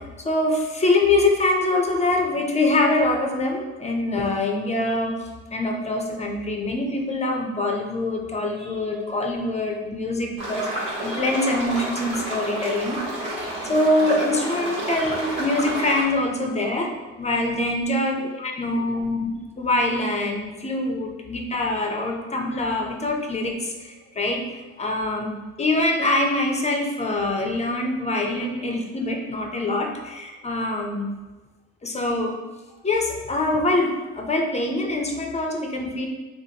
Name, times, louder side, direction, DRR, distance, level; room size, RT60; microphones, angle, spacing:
voice 1, 0.0-5.2 5.5-13.0 13.6-16.9 17.2-31.1 31.8-32.4 32.8-36.1, left 2 dB, 20° left, 1 dB, 0.6 m, -24 dB
sound 1, 10.4-16.0, right 1 dB, 85° right, 1.4 m, -30 dB
3.8 x 2.5 x 2.8 m, 1.2 s
cardioid pair, 90°, 30 cm